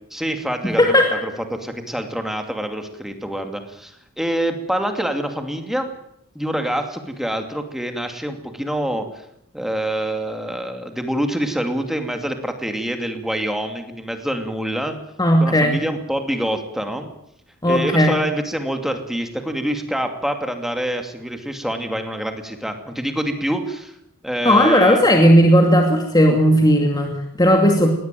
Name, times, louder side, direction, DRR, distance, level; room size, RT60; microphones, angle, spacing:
voice 1, 0.1-5.9 6.3-9.1 9.5-15.0 15.4-17.1 17.6-23.9 24.2-25.2, right 1 dB, ahead, 5 dB, 2.5 m, -26 dB
voice 2, 0.6-1.1 15.2-15.8 17.6-18.1 24.4-27.9, equal, 20° left, 2 dB, 2.5 m, -15 dB
21.0 x 17.5 x 9.2 m, 0.77 s
head